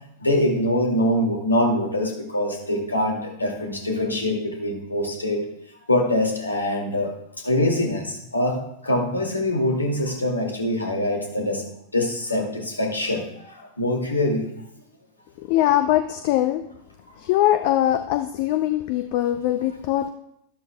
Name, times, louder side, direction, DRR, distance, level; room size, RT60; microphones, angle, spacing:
voice 1, 0.2-5.4 5.9-7.1 7.4-11.6 11.9-14.5, left 1 dB, 80° left, 1 dB, 2.3 m, -24 dB
voice 2, 15.4-16.6 17.2-20.1, left 13 dB, 45° left, 8 dB, 0.6 m, -22 dB
12.5 x 12.5 x 2.3 m, 0.78 s
figure-of-eight pair, 90°, 0 cm